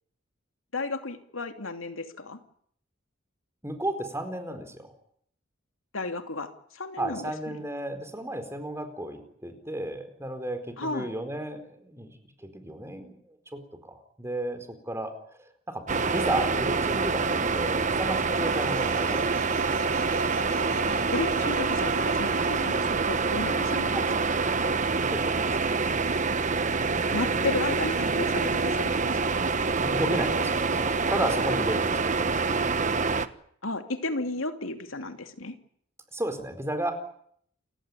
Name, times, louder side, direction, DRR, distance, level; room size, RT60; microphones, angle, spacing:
voice 1, 0.7-2.4 5.9-7.6 10.8-11.1 20.9-24.3 27.1-29.3 33.6-35.6, left 2 dB, 90° left, 7 dB, 2.6 m, -34 dB
voice 2, 3.6-4.9 7.0-12.1 12.4-15.1 15.4-19.4 24.9-25.7 29.8-32.6 36.1-36.9, right 1 dB, 15° right, 8 dB, 4.5 m, -34 dB
sound 1, 15.9-33.3, right 4 dB, 40° right, 1.2 m, -26 dB
sound 2, 18.3-23.1, right 3 dB, 85° right, 4.7 m, -40 dB
29.0 x 16.5 x 9.9 m, 0.65 s
head